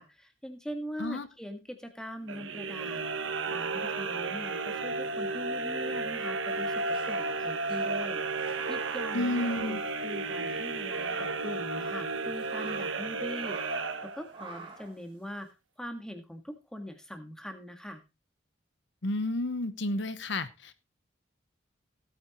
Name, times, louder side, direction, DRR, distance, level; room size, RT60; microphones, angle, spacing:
voice 1, 0.0-9.8 10.0-15.5 15.8-18.0, equal, 5° left, 5 dB, 1.6 m, -42 dB
sound 1, 2.2-14.5, right 3 dB, 85° right, 1.2 m, -33 dB
sound 2, 6.5-10.6 10.9-11.0 11.5-13.1 13.4-14.0 14.3-15.0, right 3 dB, 25° right, 2.6 m, -47 dB
voice 2, 9.1-9.8 19.0-20.7, left 2 dB, 70° left, 12 dB, 1.0 m, -31 dB
17.0 x 8.7 x 3.0 m, 0.26 s
head